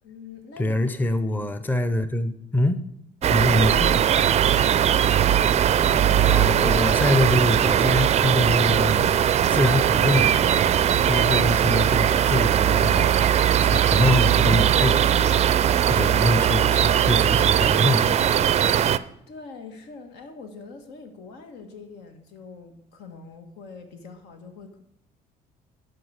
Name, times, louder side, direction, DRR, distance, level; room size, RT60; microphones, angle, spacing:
voice 1, 0.0-0.8 3.2-4.0 5.8-6.7 8.3-8.4 19.3-24.8, left 4 dB, 85° left, 5 dB, 1.6 m, -43 dB
voice 2, 0.6-2.9 3.3-4.0 6.3-9.0 9.5-10.6 11.1-18.1, left 1 dB, 10° left, 11 dB, 0.6 m, -25 dB
sound 1, 3.2-19.0, right 10 dB, 40° right, 0.4 m, -20 dB
11.5 x 4.9 x 6.4 m, 0.76 s
cardioid pair, 110°, 17 cm